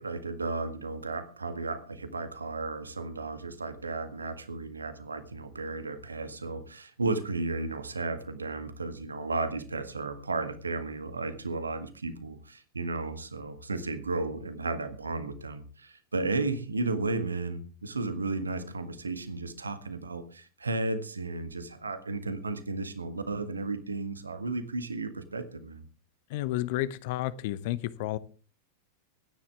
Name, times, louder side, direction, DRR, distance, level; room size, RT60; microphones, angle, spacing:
voice 1, 0.0-25.8, right 3 dB, 75° right, 10 dB, 1.7 m, -34 dB
voice 2, 26.3-28.2, left 15 dB, 50° left, 16 dB, 0.9 m, -31 dB
24.0 x 10.0 x 3.6 m, 0.38 s
figure-of-eight pair, 90°, 0 cm